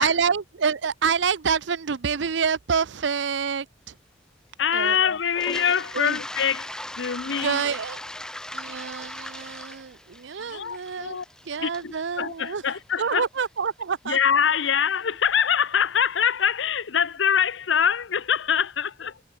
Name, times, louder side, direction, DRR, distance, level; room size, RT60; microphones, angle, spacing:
voice 1, 0.0-3.9 4.7-5.0 5.9-6.2 7.2-8.0 8.5-11.2 11.5-12.6 13.0-14.2, right 6 dB, 75° right, 0.6 m, -27 dB
voice 2, 4.6-7.7 10.4-11.2 11.6-13.2 14.1-19.2, left 7 dB, 80° left, 0.7 m, -24 dB
Toilet flush, 5.3-13.2, left 1 dB, 5° left, 0.3 m, -39 dB
head